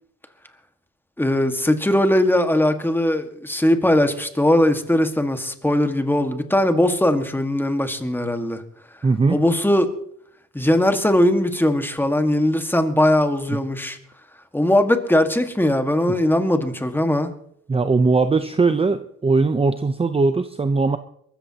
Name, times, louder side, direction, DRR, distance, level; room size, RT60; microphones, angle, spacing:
voice 1, 1.2-8.6 9.3-9.9 10.5-14.0 14.5-17.3, left 1 dB, 5° left, 1.7 m, -20 dB
voice 2, 9.0-9.4 13.5-13.6 17.7-21.0, right 3 dB, 20° right, 0.7 m, -19 dB
23.0 x 14.0 x 2.9 m
cardioid pair, 90°, 30 cm